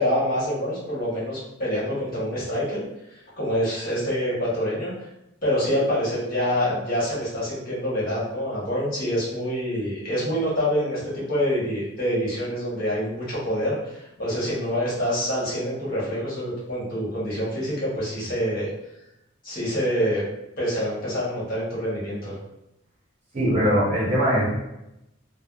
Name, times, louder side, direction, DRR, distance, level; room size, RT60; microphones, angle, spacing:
voice 1, 0.0-2.8 3.4-4.9 5.4-18.7 19.4-20.2 20.6-22.3, equal, 45° left, -8 dB, 1.2 m, -26 dB
voice 2, 23.3-24.5, equal, 35° right, -7 dB, 0.8 m, -21 dB
3.3 x 2.0 x 2.4 m, 0.88 s
head